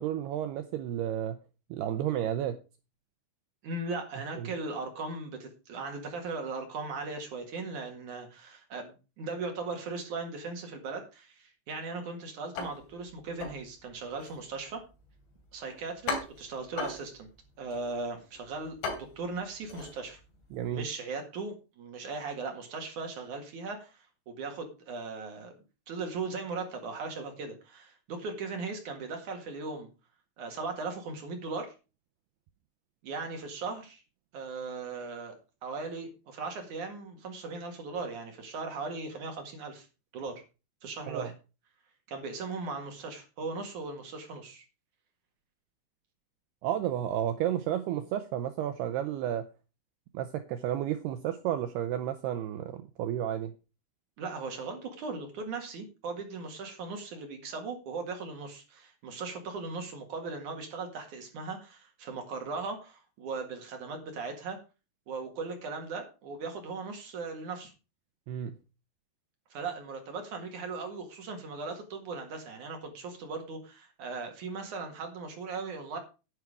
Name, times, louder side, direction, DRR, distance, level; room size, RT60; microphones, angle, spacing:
voice 1, 0.0-1.4 1.7-2.6 4.4-4.5 20.5-20.9 41.1-41.3 46.6-49.5 50.1-53.5 68.3-68.6, right 11 dB, 80° right, 8 dB, 2.4 m, -32 dB
voice 2, 3.6-14.8 15.5-17.3 17.6-20.2 20.7-25.6 25.9-29.9 30.4-31.7 33.0-34.0 34.3-35.4 35.6-39.9 40.1-40.4 40.8-41.3 42.1-44.6 54.2-64.6 65.1-67.7 69.5-76.0, right 4 dB, 55° right, 4 dB, 2.6 m, -38 dB
sound 1, 12.5-20.8, left 4 dB, 65° left, 5.0 m, -40 dB
10.5 x 9.7 x 4.9 m, 0.31 s
omnidirectional pair, 5.5 m